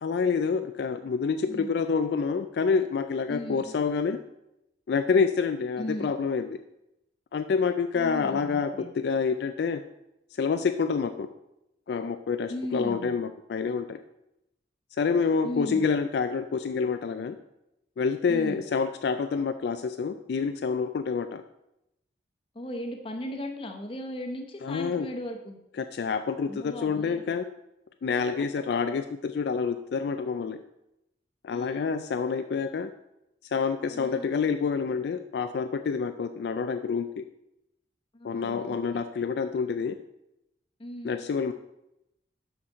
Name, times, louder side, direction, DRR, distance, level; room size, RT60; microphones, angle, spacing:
voice 1, 0.0-4.2 4.9-6.5 7.3-9.8 10.3-11.3 11.9-14.0 15.0-17.4 18.0-21.4 24.6-25.1 25.8-27.5 28.0-30.6 31.4-32.9 33.5-37.2 38.2-40.0 41.0-41.5, left 5 dB, 65° left, 8 dB, 0.3 m, -27 dB
voice 2, 3.3-3.7 5.8-6.1 7.9-8.9 12.5-13.1 15.4-15.9 18.3-18.6 22.5-25.6 26.5-27.2 28.1-28.3 31.5-31.9 33.9-34.3 38.1-39.0 40.8-41.2, left 1 dB, 30° left, 3 dB, 0.9 m, -37 dB
6.2 x 5.9 x 5.4 m, 0.87 s
head